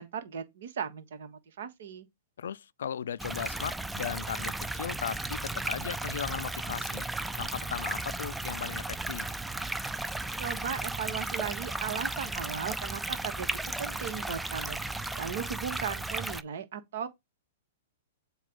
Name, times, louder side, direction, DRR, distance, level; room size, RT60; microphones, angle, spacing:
voice 1, 0.0-2.1 10.4-17.1, right 7 dB, 70° right, 1.3 m, -37 dB
voice 2, 2.4-7.1 7.4-9.3, left 8 dB, 75° left, 0.4 m, -37 dB
sound 1, 3.2-16.4, right 2 dB, 5° right, 0.4 m, -35 dB
7.3 x 2.5 x 5.3 m
hypercardioid pair, 120°, 0 cm